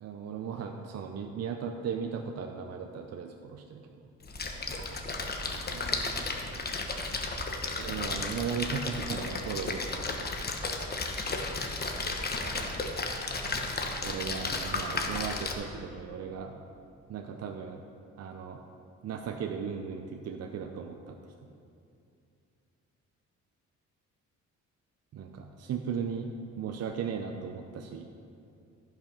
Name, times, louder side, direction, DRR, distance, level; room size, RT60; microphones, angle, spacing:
voice 1, 0.0-3.8 7.9-10.2 14.0-16.5 17.1-17.8 18.2-18.6 19.0-21.2 25.1-28.1, right 6 dB, 55° right, 4 dB, 0.7 m, -36 dB
Splash splatter, 4.2-15.5, left 3 dB, 30° left, 1.2 m, -34 dB
voice 2, 5.4-6.6 7.7-8.1 12.3-13.1 14.8-15.2 15.7-15.8, right 3 dB, 85° right, 3 dB, 1.4 m, -47 dB
14.0 x 5.8 x 5.1 m, 2.5 s
cardioid pair, 90°, 30 cm